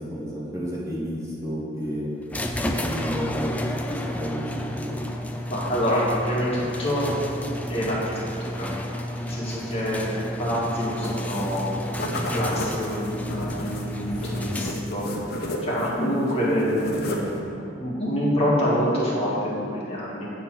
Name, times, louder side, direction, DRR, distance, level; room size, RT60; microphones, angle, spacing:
voice 1, 0.0-2.1 2.6-3.6 3.9-5.1, equal, 15° right, -8 dB, 1.3 m, -32 dB
sound 1, 2.3-15.1, left 1 dB, 10° left, 0.3 m, -31 dB
voice 2, 5.5-7.1 7.7-8.7 9.2-15.0 15.6-20.3, equal, 30° left, -7 dB, 1.7 m, -26 dB
sound 2, 11.0-11.7 11.9-16.0 16.2-17.4, left 1 dB, 55° left, 0.8 m, -33 dB
8.8 x 3.7 x 6.0 m, 2.9 s
head